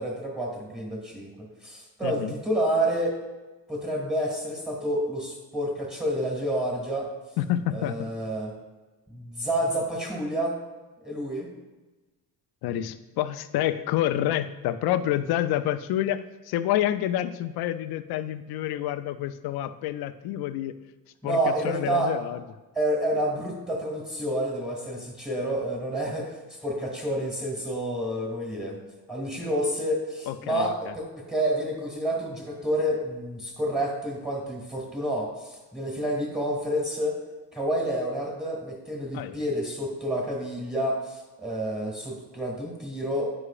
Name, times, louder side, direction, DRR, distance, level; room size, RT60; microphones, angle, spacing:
voice 1, 0.0-1.3 1.6-3.2 3.7-7.1 7.7-8.5 9.1-10.6 11.0-11.5 21.2-22.1 22.8-28.8 29.1-37.2 37.5-43.3, right 1 dB, ahead, -1 dB, 1.7 m, -29 dB
voice 2, 2.0-2.3 7.4-8.1 12.6-20.7 21.2-22.4 30.3-30.7 39.1-39.4, left 12 dB, 65° left, 12 dB, 0.5 m, -28 dB
9.5 x 4.9 x 2.4 m, 1.2 s
cardioid pair, 110°, 41 cm